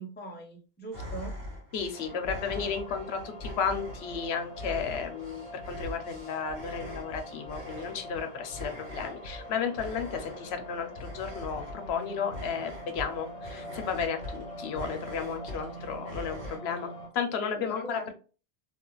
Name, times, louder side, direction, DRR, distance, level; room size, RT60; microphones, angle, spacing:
voice 1, 0.0-1.4 17.5-18.1, right 1 dB, 15° left, 1 dB, 0.3 m, -41 dB
sound 1, 0.9-16.6, left 1 dB, 65° right, 1.2 m, -43 dB
voice 2, 1.7-18.1, left 6 dB, 75° left, 6 dB, 0.8 m, -33 dB
sound 2, 1.9-17.1, equal, 40° left, 0.8 m, -44 dB
2.3 x 2.3 x 2.9 m, 0.36 s
omnidirectional pair, 1.1 m